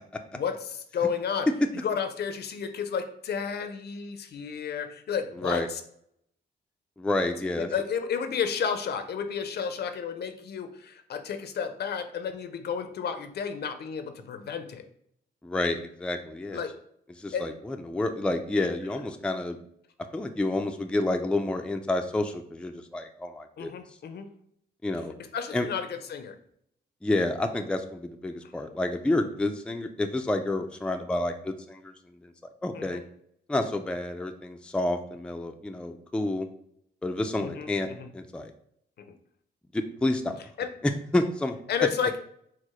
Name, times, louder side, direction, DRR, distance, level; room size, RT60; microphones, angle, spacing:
voice 1, 0.3-1.5 1.8-5.8 7.6-14.9 16.5-16.7 17.3-17.5 23.6-24.3 25.3-26.4 32.7-33.0 37.4-38.1 39.0-39.1 40.6-40.7 41.7-42.2, left 7 dB, 65° left, 8 dB, 0.5 m, -32 dB
voice 2, 7.0-7.7 15.4-16.6 17.2-19.6 20.1-23.7 24.8-25.1 25.5-25.7 27.0-32.3 32.6-33.0 33.5-36.5 37.0-37.9 38.1-38.5 39.7-40.3 41.1-41.6, left 2 dB, 5° left, 5 dB, 0.4 m, -29 dB
4.6 x 2.1 x 4.3 m, 0.70 s
cardioid pair, 85°, 18 cm